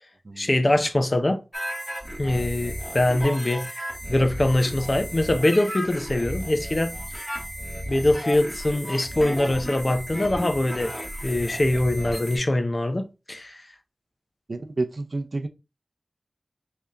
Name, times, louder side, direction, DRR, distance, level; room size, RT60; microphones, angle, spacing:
voice 1, 0.4-1.4 2.2-3.6 4.1-6.9 7.9-10.9 11.2-13.6, left 1 dB, 40° left, 0.6 m, -23 dB
sound 1, 1.5-12.4, equal, 15° left, 1.0 m, -34 dB
voice 2, 14.5-15.5, right 2 dB, 65° right, 0.5 m, -30 dB
3.4 x 2.7 x 3.6 m
cardioid pair, 45°, 0 cm